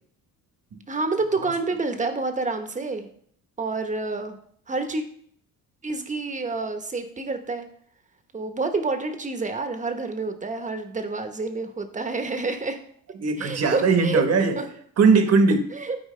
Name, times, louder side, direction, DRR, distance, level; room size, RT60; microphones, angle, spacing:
voice 1, 0.9-3.1 3.6-4.3 4.7-5.0 5.8-7.6 8.3-12.8 13.4-14.2 14.5-14.6 15.7-16.0, right 3 dB, 20° right, 7 dB, 1.1 m, -28 dB
voice 2, 13.2-14.6 15.0-15.7, right 4 dB, 45° right, 7 dB, 1.2 m, -20 dB
13.0 x 4.5 x 3.3 m, 0.62 s
cardioid pair, 105°, 36 cm